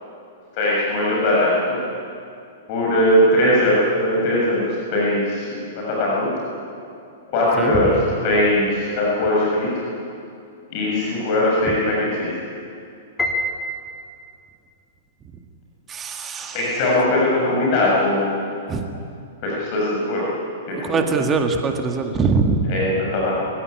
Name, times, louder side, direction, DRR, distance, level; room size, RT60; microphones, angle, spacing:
voice 1, 0.6-1.8 2.7-6.3 7.3-7.9 8.2-9.8 10.7-12.3 16.5-18.4 19.4-20.2 20.9-21.0 22.7-23.4, left 1 dB, 45° left, -4 dB, 6.8 m, -20 dB
Piano, 13.2-14.5, left 1 dB, 5° left, 3.2 m, -27 dB
voice 2, 15.9-16.8 18.7-18.9 20.7-22.6, right 4 dB, 20° right, 5 dB, 2.0 m, -22 dB
24.5 x 16.5 x 9.9 m, 2.5 s
figure-of-eight pair, 105°, 0 cm